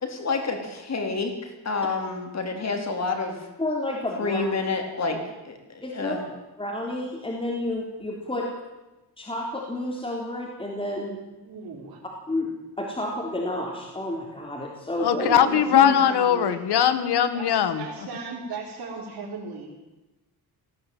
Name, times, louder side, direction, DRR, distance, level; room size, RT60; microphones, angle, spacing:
voice 1, 0.0-3.5 4.2-6.2 15.7-16.1, left 3 dB, 40° left, 4 dB, 4.0 m, -28 dB
voice 2, 3.6-4.4 5.8-6.2 6.6-8.5 9.2-11.2 12.3-12.5 12.8-15.3, left 1 dB, 15° left, 0 dB, 3.5 m, -30 dB
voice 3, 11.4-12.0 15.1-16.6 17.3-19.7, right 4 dB, 60° right, -4 dB, 4.6 m, -36 dB
voice 4, 15.0-17.8, left 9 dB, 80° left, 12 dB, 1.6 m, -20 dB
18.5 x 15.0 x 9.3 m, 1.1 s
cardioid pair, 110°, 39 cm